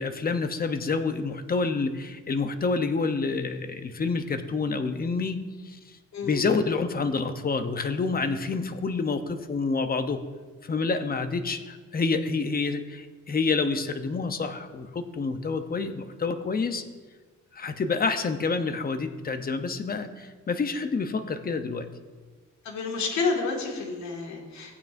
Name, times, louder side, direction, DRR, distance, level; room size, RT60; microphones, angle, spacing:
voice 1, 0.0-5.4 5.6-5.8 6.2-10.2 10.6-16.8 17.5-21.9, left 4 dB, 30° left, 8 dB, 0.8 m, -28 dB
voice 2, 6.1-6.4 22.6-24.8, left 4 dB, 65° left, 0 dB, 2.2 m, -29 dB
16.0 x 9.1 x 2.7 m, 1.4 s
cardioid pair, 90°, 30 cm